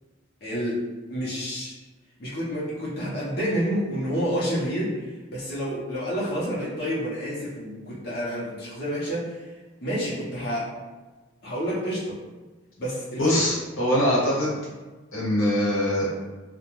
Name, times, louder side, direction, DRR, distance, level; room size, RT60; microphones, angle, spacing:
voice 1, 0.4-0.8 1.1-1.7 2.2-5.0 5.3-9.4 9.8-10.7 11.4-12.2 12.8-13.2, equal, 50° left, -8 dB, 0.7 m, -29 dB
voice 2, 13.2-14.6 15.1-16.1, left 1 dB, 80° left, -5 dB, 0.9 m, -23 dB
2.4 x 2.1 x 3.0 m, 1.2 s
head